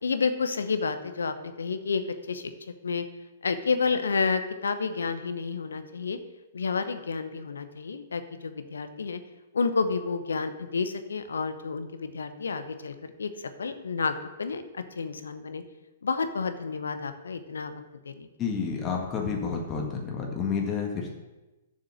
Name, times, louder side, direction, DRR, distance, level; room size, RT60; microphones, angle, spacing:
voice 1, 0.0-2.0 2.3-2.5 2.8-3.0 3.4-6.2 6.5-9.2 9.5-15.6 16.0-18.3, left 4 dB, 70° left, 10 dB, 0.9 m, -30 dB
voice 2, 18.4-21.1, left 6 dB, 25° left, 0 dB, 1.8 m, -30 dB
7.3 x 6.5 x 7.5 m, 1.1 s
figure-of-eight pair, 115°, 0 cm